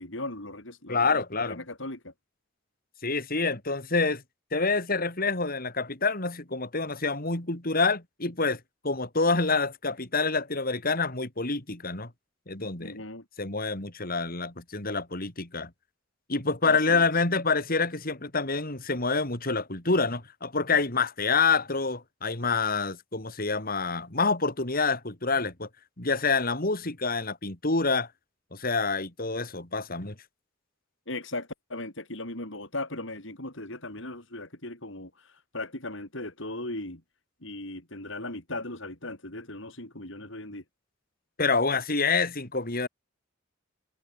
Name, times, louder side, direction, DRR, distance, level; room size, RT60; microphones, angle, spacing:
voice 1, 0.0-2.1 12.8-13.3 16.6-17.1 31.1-37.0 37.4-40.6, left 2 dB, 65° left, 7.6 m, -37 dB
voice 2, 0.9-1.6 3.0-4.2 4.5-8.6 8.8-12.1 12.5-13.0 13.4-15.7 16.3-25.7 26.0-28.1 28.5-30.2 41.4-42.9, left 4 dB, 45° left, 3.8 m, -27 dB
head